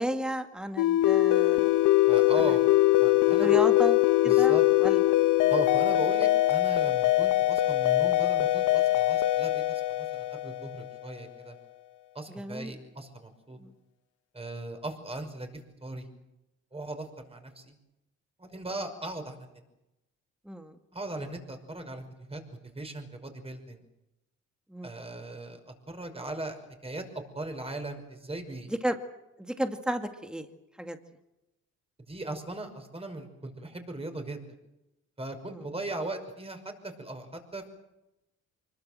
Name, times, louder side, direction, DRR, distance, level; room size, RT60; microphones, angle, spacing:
voice 1, 0.0-1.8 2.4-2.6 3.4-4.0 4.2-5.0 12.3-12.7 13.6-13.7 20.5-20.8 24.7-25.0 28.7-29.0 29.4-30.5 30.8-31.0 35.5-35.6, right 1 dB, 5° right, 7 dB, 2.2 m, -33 dB
sound 1, 0.8-11.1, left 16 dB, 80° left, 0.9 m, -23 dB
voice 2, 2.1-2.6 3.0-3.6 4.3-4.6 5.5-11.6 12.1-13.6 14.3-16.1 16.7-17.7 18.4-19.5 20.9-23.8 24.8-28.7 32.1-34.4 35.2-37.7, right 2 dB, 20° right, 5 dB, 5.7 m, -38 dB
25.0 x 22.0 x 7.7 m, 0.93 s
cardioid pair, 90°, 30 cm